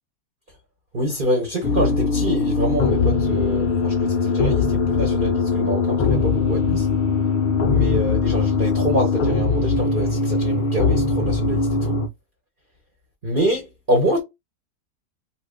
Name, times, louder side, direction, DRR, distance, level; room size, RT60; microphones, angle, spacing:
voice 1, 0.9-6.9 7.7-12.0 13.2-14.2, equal, 40° right, 1.1 m, -25 dB
sound 1, 1.6-12.1, left 4 dB, 75° left, 0.4 m, -21 dB
2.8 x 2.4 x 3.6 m
omnidirectional pair, 1.6 m